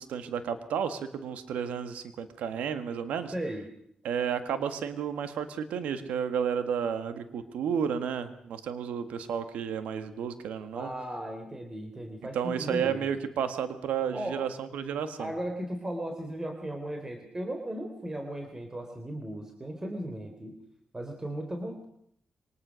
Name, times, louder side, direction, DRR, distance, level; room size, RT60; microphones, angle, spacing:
voice 1, 0.0-3.3 4.0-10.9 12.3-15.3, right 7 dB, 90° right, 10 dB, 1.7 m, -32 dB
voice 2, 3.3-3.7 10.7-13.0 14.1-14.4 15.2-20.6 20.9-21.9, right 1 dB, 25° right, 4 dB, 3.6 m, -36 dB
24.0 x 20.0 x 6.4 m, 0.69 s
cardioid pair, 60°, 2 cm